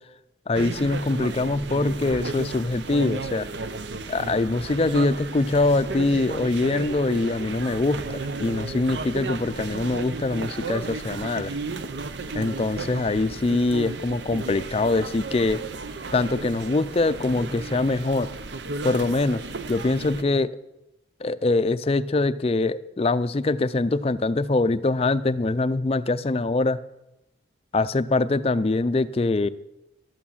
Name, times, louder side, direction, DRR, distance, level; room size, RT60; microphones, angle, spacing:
voice 1, 0.5-3.5 4.1-11.6 12.3-15.6 16.1-18.3 18.8-19.4 19.7-20.6 21.2-26.8 27.7-29.5, left 2 dB, 30° left, 13 dB, 0.4 m, -23 dB
sound 1, 0.5-20.2, right 3 dB, 70° right, 0.6 m, -34 dB
12.5 x 8.5 x 7.3 m, 0.94 s
head